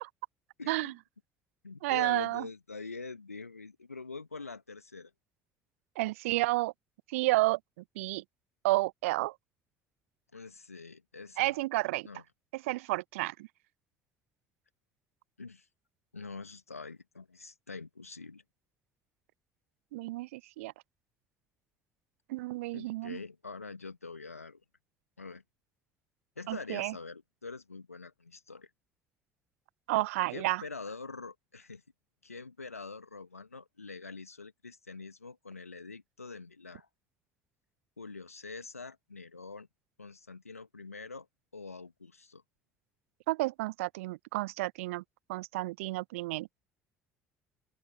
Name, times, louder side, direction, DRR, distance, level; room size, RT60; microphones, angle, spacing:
voice 1, 0.6-0.9 1.6-5.1 10.3-11.6 12.0-12.2 15.4-15.7 16.1-18.4 22.7-24.6 25.2-25.4 26.4-28.7 30.3-31.8 32.2-36.9 38.0-39.7 40.0-41.3 41.5-42.4, left 4 dB, 85° left, 1.7 m, -45 dB
voice 2, 1.8-2.5 6.0-6.7 7.1-7.6 8.0-8.2 8.6-9.3 11.4-12.1 12.5-13.5 19.9-20.7 22.3-23.2 26.5-26.9 29.9-30.6 43.3-45.0 45.3-46.5, right 20 dB, 70° right, 0.5 m, -31 dB
open air
figure-of-eight pair, 55°, 8 cm